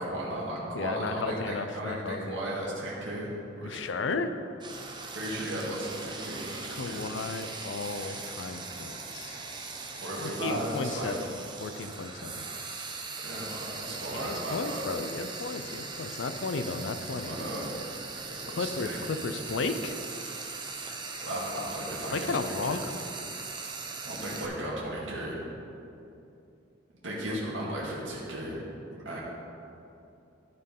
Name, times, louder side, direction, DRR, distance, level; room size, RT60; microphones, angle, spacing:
voice 1, 0.0-3.3 3.6-4.1 5.1-7.1 9.9-11.1 13.2-14.8 17.2-17.8 18.3-19.0 21.2-22.8 24.0-25.4 27.0-28.6 29.1-29.2, right 1 dB, 85° right, -6 dB, 1.8 m, -35 dB
voice 2, 0.7-2.4 3.6-4.3 6.6-9.4 10.2-11.3 11.6-12.5 14.1-17.4 18.5-20.0 22.1-23.0 27.3-27.7, left 4 dB, 75° left, 9 dB, 0.5 m, -34 dB
Frying (food), 4.6-24.5, right 4 dB, 25° right, 0.7 m, -40 dB
12.0 x 4.6 x 5.3 m, 2.7 s
head